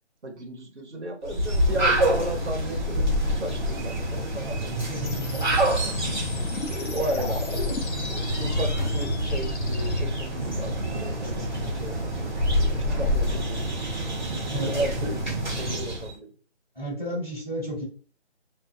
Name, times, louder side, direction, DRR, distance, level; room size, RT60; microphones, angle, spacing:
voice 1, 0.2-4.8 6.3-11.5 11.7-13.7 14.4-16.3, right 1 dB, 85° right, 3 dB, 1.0 m, -35 dB
sound 1, 1.2-16.1, equal, 45° right, 1.0 m, -27 dB
voice 2, 4.5-5.7 14.5-15.1 16.7-17.8, right 1 dB, ahead, -17 dB, 1.0 m, -33 dB
sound 2, 5.1-10.0, left 2 dB, 75° left, 0.7 m, -32 dB
2.5 x 2.2 x 2.4 m, 0.40 s
figure-of-eight pair, 170°, 34 cm